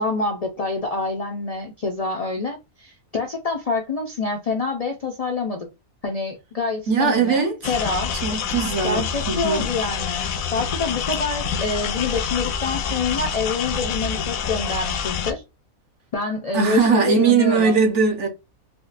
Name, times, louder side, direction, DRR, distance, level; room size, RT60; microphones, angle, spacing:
voice 1, 0.0-5.7 6.0-8.1 8.8-10.3 10.5-15.4 16.1-17.8, left 3 dB, 60° left, 0.4 m, -26 dB
voice 2, 6.9-7.6 8.2-9.7 16.5-18.3, right 5 dB, 60° right, 1.1 m, -20 dB
sound 1, 7.6-15.3, left 7 dB, 80° left, 1.0 m, -27 dB
4.4 x 2.1 x 2.5 m
omnidirectional pair, 1.4 m